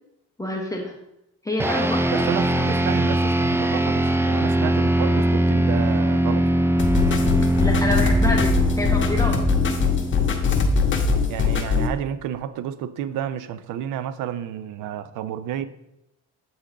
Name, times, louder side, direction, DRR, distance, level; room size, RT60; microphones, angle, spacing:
voice 1, 0.4-0.9 1.4-2.2 2.6-2.8 7.6-9.4, left 1 dB, 10° left, 0.9 m, -27 dB
sound 1, 1.6-11.2, right 1 dB, 10° right, 0.3 m, -22 dB
voice 2, 2.1-6.5 11.3-15.6, right 10 dB, 90° right, 0.5 m, -31 dB
sound 2, 6.8-11.9, left 5 dB, 40° left, 1.0 m, -21 dB
7.9 x 3.9 x 3.6 m
cardioid pair, 90°, 30 cm